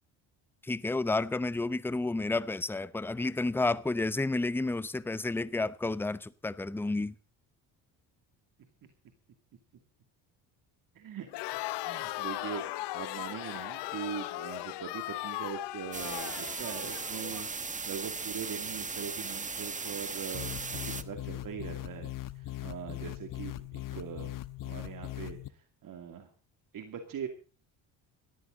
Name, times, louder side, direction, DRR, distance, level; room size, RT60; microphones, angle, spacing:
voice 1, 0.6-7.1, left 2 dB, 5° left, 0.7 m, -31 dB
voice 2, 10.9-11.5 11.8-12.6 12.9-24.3 24.6-26.3 26.7-27.3, right 8 dB, 50° right, 2.5 m, -41 dB
Crowd, 11.3-17.5, left 17 dB, 80° left, 1.2 m, -38 dB
sound 1, 15.9-21.0, right 4 dB, 20° right, 1.1 m, -37 dB
sound 2, 20.3-25.5, left 14 dB, 50° left, 1.1 m, -40 dB
20.0 x 14.5 x 3.9 m
cardioid pair, 105°, 41 cm